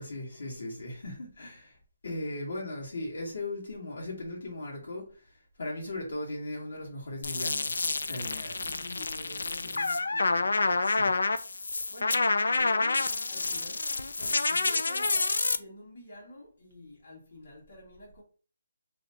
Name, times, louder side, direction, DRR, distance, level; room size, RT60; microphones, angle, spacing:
voice 1, 0.0-1.7 2.0-5.0 5.6-8.8 9.5-9.8 10.8-11.1, left 1 dB, 65° left, 1.3 m, -38 dB
sound 1, 7.2-15.6, left 3 dB, 85° left, 0.3 m, -28 dB
voice 2, 8.5-10.9 11.9-13.8 14.2-18.2, left 1 dB, 40° left, 1.4 m, -48 dB
3.2 x 2.7 x 2.8 m
hypercardioid pair, 175°, 0 cm